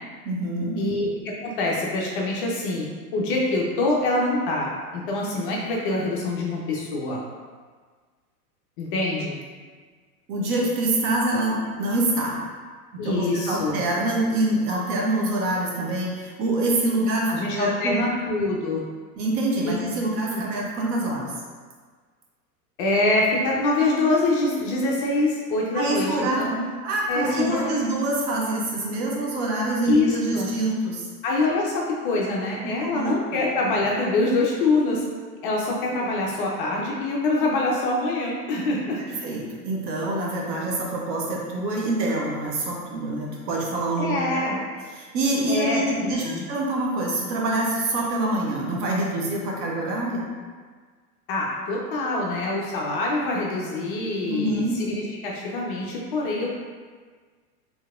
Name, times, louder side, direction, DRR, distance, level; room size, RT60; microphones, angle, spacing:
voice 1, 0.2-0.8 10.3-12.4 12.9-18.0 19.2-21.3 25.7-26.5 26.8-31.1 32.6-33.1 39.2-44.6 44.9-50.3 54.3-54.7, right 1 dB, 35° right, -2 dB, 0.6 m, -25 dB
voice 2, 0.8-2.9 3.1-7.2 8.8-9.3 13.0-13.8 17.3-18.8 19.6-19.7 20.3-20.4 22.8-26.7 27.1-27.8 29.9-30.5 31.2-35.0 35.4-39.0 44.0-44.6 45.5-46.5 51.3-56.6, left 2 dB, 35° left, -2 dB, 0.5 m, -25 dB
4.4 x 2.8 x 2.4 m, 1.5 s
figure-of-eight pair, 95°, 48 cm